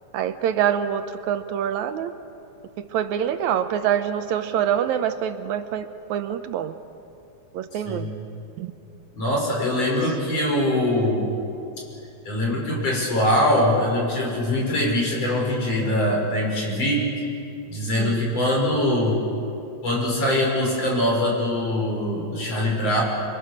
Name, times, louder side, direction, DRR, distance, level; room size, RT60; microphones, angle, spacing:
voice 1, 0.1-2.1 2.8-6.7 7.5-8.1 8.6-8.7 9.9-10.0 18.0-18.2, right 9 dB, 75° right, 9 dB, 2.1 m, -25 dB
voice 2, 7.7-8.1 9.1-11.2 12.2-17.1 17.7-19.2 19.8-23.0, left 1 dB, 55° left, -2 dB, 6.8 m, -23 dB
29.5 x 23.0 x 6.7 m, 2.7 s
omnidirectional pair, 3.4 m